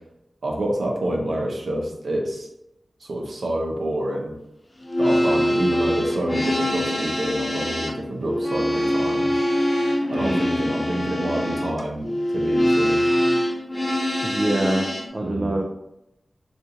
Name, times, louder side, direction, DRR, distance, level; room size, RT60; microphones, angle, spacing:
voice 1, 0.4-2.5 3.0-4.3 5.0-9.4 10.1-12.1 12.3-13.0 15.2-15.6, right 1 dB, 75° right, -1 dB, 0.6 m, -27 dB
sound 1, 4.8-15.1, equal, 25° left, 0.5 m, -23 dB
voice 2, 10.2-10.5 14.2-14.9 15.1-15.6, right 1 dB, 35° right, 1 dB, 0.3 m, -24 dB
3.6 x 2.4 x 2.8 m, 0.85 s
wide cardioid pair, 80°, 0 cm